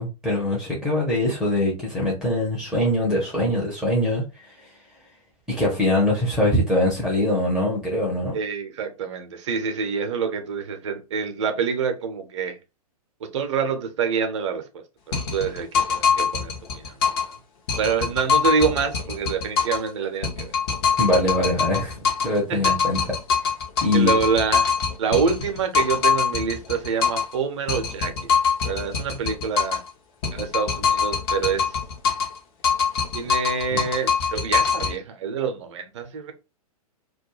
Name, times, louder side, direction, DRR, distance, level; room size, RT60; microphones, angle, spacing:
voice 1, 0.0-4.8 5.5-8.3 21.0-23.0 23.8-24.2 33.7-33.8, left 1 dB, ahead, 0.6 m, -23 dB
voice 2, 8.3-12.6 13.2-16.9 17.8-20.5 22.5-22.8 23.9-28.3 28.6-29.8 30.3-31.8 33.1-36.3, right 6 dB, 50° right, 0.6 m, -26 dB
sound 1, 15.1-17.3 17.7-19.9 20.2-22.4 22.6-27.3 27.7-29.9 30.2-32.4 32.6-35.0, left 6 dB, 40° left, 0.8 m, -23 dB
2.3 x 2.2 x 3.0 m
figure-of-eight pair, 105°, 19 cm